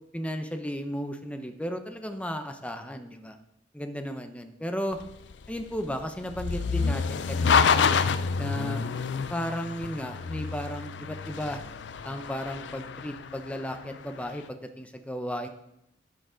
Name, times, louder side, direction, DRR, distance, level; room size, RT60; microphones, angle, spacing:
voice 1, 0.1-3.4 3.7-5.0 5.5-7.8 8.4-8.8 9.3-11.6 12.0-15.5, equal, 5° left, 7 dB, 0.7 m, -34 dB
sound 1, 4.9-14.2, left 5 dB, 70° left, 0.4 m, -28 dB
11.5 x 6.8 x 3.8 m, 0.81 s
head